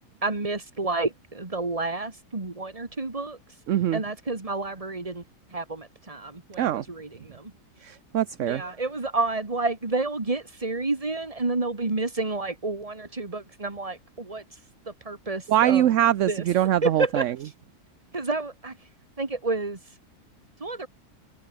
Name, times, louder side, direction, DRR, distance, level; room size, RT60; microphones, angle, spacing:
voice 1, 0.2-3.4 3.9-5.2 5.5-7.5 8.4-14.4 14.9-15.9 16.3-16.4 16.8-17.2 18.1-18.8 19.2-19.8 20.6-20.9, right 3 dB, 20° right, 2.2 m, -30 dB
voice 2, 3.7-4.0 6.6-6.8 7.8-8.6 15.5-17.3, right 12 dB, 60° right, 0.9 m, -23 dB
omnidirectional pair, 1.7 m